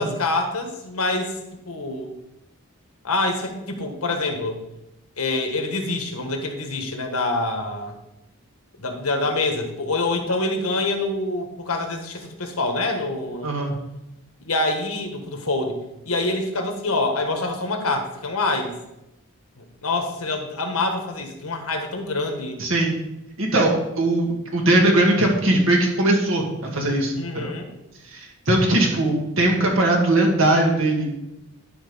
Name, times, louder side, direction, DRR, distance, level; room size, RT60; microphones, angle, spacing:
voice 1, 0.0-1.4 1.6-2.1 3.0-4.6 5.2-8.0 8.8-13.6 14.4-15.8 16.0-18.7 19.6-22.6 27.2-27.7, left 2 dB, 85° left, 4 dB, 1.5 m, -26 dB
voice 2, 13.4-13.8 22.6-23.0 23.4-27.5 28.1-31.1, right 1 dB, 65° right, 0 dB, 2.0 m, -20 dB
11.5 x 4.4 x 5.6 m, 0.91 s
head